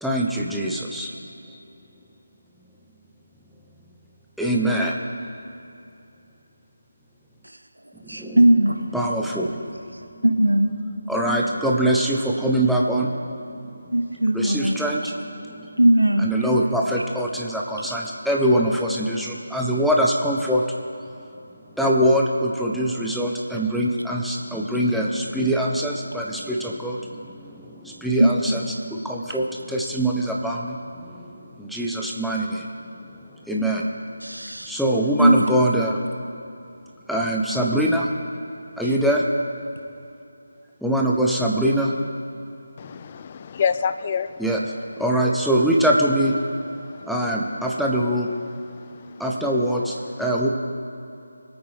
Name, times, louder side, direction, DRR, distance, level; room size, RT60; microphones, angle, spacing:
voice 1, 0.0-1.1 1.5-1.6 4.4-5.0 8.1-8.4 8.9-9.7 11.1-13.1 14.3-15.7 16.2-20.7 21.8-28.6 28.9-31.3 31.6-32.7 33.5-33.9 34.6-36.0 37.1-38.1 38.8-39.2 40.8-41.9 44.4-44.6 45.0-46.3 47.1-48.3 49.2-50.5, right 1 dB, ahead, 0.8 m, -23 dB
voice 2, 8.1-8.9 10.2-10.7 13.9-14.8 15.8-16.3 28.2-28.7 34.2-34.7 35.2-35.5, right 1 dB, 90° right, 1.3 m, -19 dB
voice 3, 42.8-44.4 46.8-47.1 48.7-49.2, left 7 dB, 30° left, 0.4 m, -28 dB
23.0 x 8.8 x 3.6 m
figure-of-eight pair, 155°, 0 cm